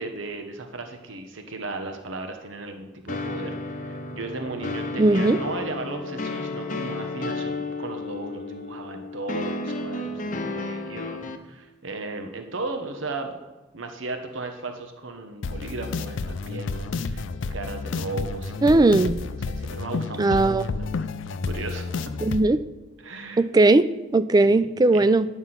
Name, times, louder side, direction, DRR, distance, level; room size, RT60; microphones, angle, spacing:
voice 1, 0.0-11.2 11.4-13.4 13.7-17.2 17.5-18.9 19.5-20.9 21.4-21.9 23.0-23.4 24.5-25.1, right 3 dB, 80° right, 5 dB, 1.0 m, -36 dB
sound 1, 3.1-11.4, left 3 dB, 45° left, 0.7 m, -32 dB
voice 2, 5.0-5.4 18.6-19.2 20.2-20.7 22.2-22.6 23.4-25.3, right 2 dB, 20° right, 14 dB, 0.3 m, -18 dB
sound 2, 15.4-22.4, left 4 dB, 70° left, 0.4 m, -30 dB
9.7 x 5.9 x 5.8 m, 1.2 s
head